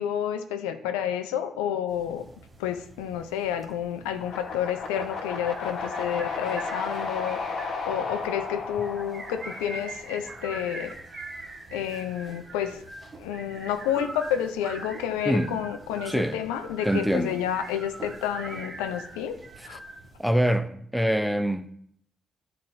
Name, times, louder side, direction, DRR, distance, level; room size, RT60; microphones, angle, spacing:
voice 1, 0.0-2.3 2.6-7.4 7.8-11.0 11.7-12.8 13.1-19.4 19.6-19.8, left 9 dB, 85° left, 0.4 m, -30 dB
sound 1, 1.9-20.3, right 2 dB, 45° right, 1.5 m, -43 dB
sound 2, 4.2-10.4, left 4 dB, 65° left, 1.1 m, -34 dB
voice 2, 16.0-16.4 16.8-17.4 20.2-21.7, equal, ahead, 0.7 m, -24 dB
10.0 x 4.3 x 2.6 m
hypercardioid pair, 45°, 0 cm